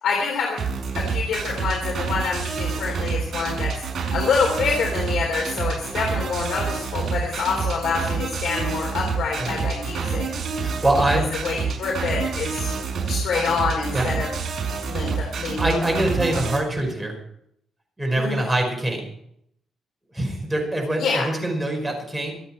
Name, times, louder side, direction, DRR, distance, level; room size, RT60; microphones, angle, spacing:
voice 1, 0.0-0.6 1.0-3.7 4.1-10.3 11.4-12.7 13.1-14.3 14.9-15.9 16.3-16.4 18.1-18.4 21.0-21.3, left 5 dB, 75° left, 0 dB, 3.8 m, -26 dB
sound 1, 0.6-16.6, right 5 dB, 45° right, 6.1 m, -28 dB
voice 2, 10.6-11.3 13.3-13.4 13.9-14.1 15.6-17.2 18.0-19.1 20.1-22.3, right 1 dB, 5° right, 1 dB, 5.5 m, -24 dB
25.5 x 9.0 x 4.5 m, 0.71 s
cardioid pair, 135°, 0 cm